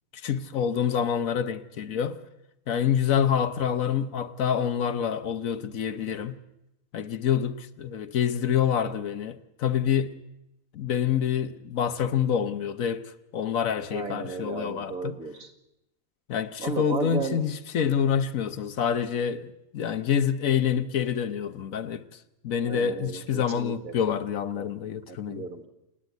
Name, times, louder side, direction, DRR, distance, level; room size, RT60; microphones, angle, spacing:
voice 1, 0.2-2.2 2.7-6.4 6.9-10.1 10.7-15.1 16.3-22.0 22.4-25.4, left 8 dB, 70° left, 1.3 m, -27 dB
voice 2, 13.9-15.5 16.6-17.4 22.6-24.0 24.6-24.7 25.1-25.7, right 4 dB, 75° right, 2.5 m, -35 dB
29.0 x 9.8 x 9.2 m
omnidirectional pair, 1.5 m